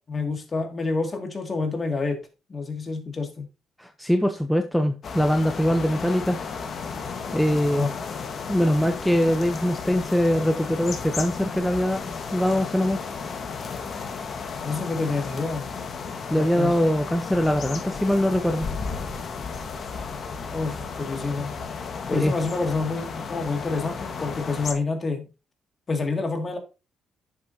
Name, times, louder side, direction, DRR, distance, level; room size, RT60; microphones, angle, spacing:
voice 1, 0.1-2.2 2.5-3.4 7.7-8.1 14.6-15.7 16.3-16.8 20.5-21.5 22.1-25.3 25.9-26.6, left 3 dB, 35° left, 5 dB, 2.4 m, -28 dB
voice 2, 3.8-6.4 7.3-7.9 8.5-13.0 16.3-18.7 22.1-22.3, equal, 5° left, 6 dB, 0.8 m, -22 dB
sound 1, 5.0-24.7, left 5 dB, 50° left, 1.5 m, -34 dB
10.5 x 7.3 x 2.9 m, 0.29 s
cardioid pair, 90°, 0 cm